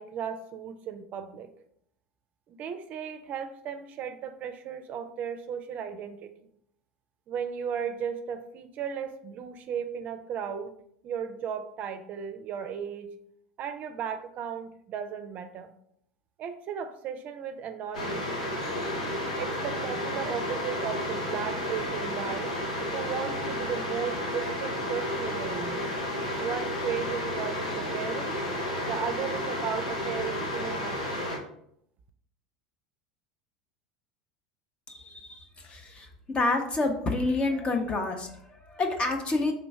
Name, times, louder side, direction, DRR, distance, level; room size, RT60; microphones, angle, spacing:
voice 1, 0.0-1.5 2.5-6.3 7.3-10.7 11.0-13.1 13.6-15.7 16.4-18.5 19.4-22.5 22.9-25.8 26.4-28.4 28.8-31.3, right 7 dB, 45° right, 8 dB, 0.5 m, -35 dB
sound 1, 17.9-31.4, left 1 dB, 90° left, 1.0 m, -32 dB
voice 2, 34.9-39.5, left 2 dB, 30° left, 4 dB, 0.7 m, -29 dB
3.4 x 3.0 x 4.6 m, 0.71 s
hypercardioid pair, 85°, 4 cm